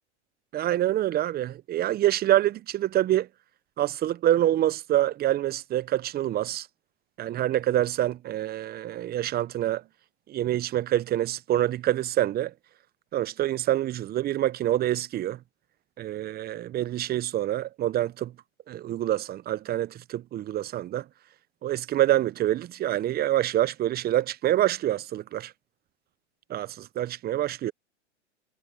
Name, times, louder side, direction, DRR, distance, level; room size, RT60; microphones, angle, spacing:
voice 1, 0.5-3.3 3.8-6.7 7.2-9.8 10.3-12.5 13.1-15.4 16.0-18.3 18.7-21.0 21.6-25.5 26.5-27.7, right 13 dB, 25° right, 0.9 m, -26 dB
hypercardioid pair, 105°, 35 cm